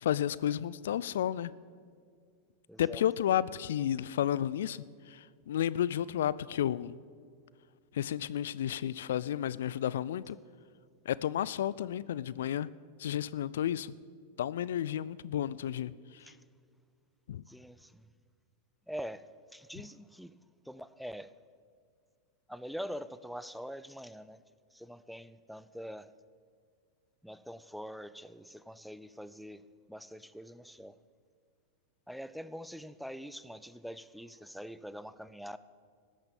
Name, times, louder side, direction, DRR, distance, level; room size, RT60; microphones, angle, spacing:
voice 1, 0.0-1.5 2.8-6.9 7.9-10.4 11.1-12.7 13.0-13.9 14.4-15.9 17.3-17.4, left 10 dB, 70° left, 0.3 m, -32 dB
voice 2, 2.7-3.0 16.2-16.4 17.5-18.1 18.9-20.3 20.6-21.3 22.5-24.4 24.7-26.1 27.2-31.0 32.1-35.6, equal, ahead, 0.5 m, -44 dB
14.0 x 8.8 x 7.0 m
hypercardioid pair, 100°, 0 cm